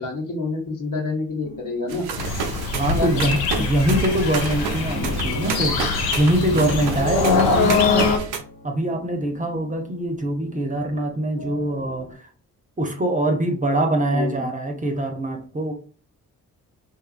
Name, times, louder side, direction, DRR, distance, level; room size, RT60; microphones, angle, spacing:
voice 1, 0.0-2.1 3.0-3.1 3.5-3.6 14.1-14.4, left 3 dB, 60° left, 1 dB, 1.0 m, -27 dB
sound 1, 1.4-12.1, left 1 dB, 25° left, 0.9 m, -40 dB
sound 2, 1.9-8.4, right 6 dB, 85° right, 0.5 m, -30 dB
sound 3, 2.2-8.2, left 5 dB, 85° left, 0.5 m, -23 dB
voice 2, 2.7-5.8 6.2-8.2 8.6-12.2 12.8-15.7, right 1 dB, 20° right, 4 dB, 0.6 m, -23 dB
2.7 x 2.4 x 2.5 m, 0.41 s
supercardioid pair, 45°, 37 cm